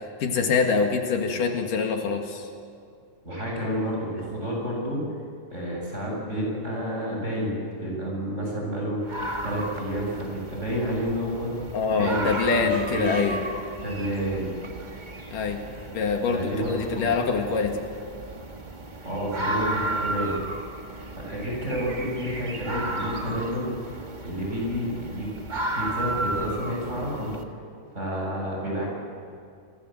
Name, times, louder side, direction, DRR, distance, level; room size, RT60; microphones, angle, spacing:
voice 1, 0.2-2.5 11.7-13.4 15.3-15.6 15.9-17.9, left 5 dB, 75° left, 3 dB, 3.4 m, -25 dB
voice 2, 3.2-5.0 5.5-7.5 7.8-9.2 9.4-11.5 11.9-12.2 12.5-13.2 13.8-14.6 16.3-17.1 19.0-20.4 21.1-23.7 24.2-25.3 25.7-27.3 27.9-28.9, equal, 20° right, -2 dB, 8.0 m, -30 dB
sound 1, 9.1-27.4, right 2 dB, 50° right, 0.5 m, -34 dB
29.5 x 22.5 x 7.8 m, 2.3 s
omnidirectional pair, 3.8 m